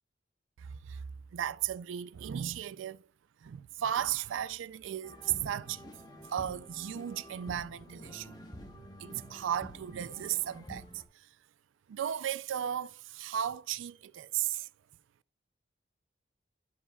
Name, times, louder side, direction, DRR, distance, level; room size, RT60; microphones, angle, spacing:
voice 1, 0.6-1.0 1.3-3.1 3.4-5.9 6.3-11.4 11.9-14.7, right 10 dB, 90° right, 0.3 m, -35 dB
sound 1, 5.0-11.0, equal, 20° left, 1.1 m, -49 dB
11.0 x 7.3 x 2.3 m
head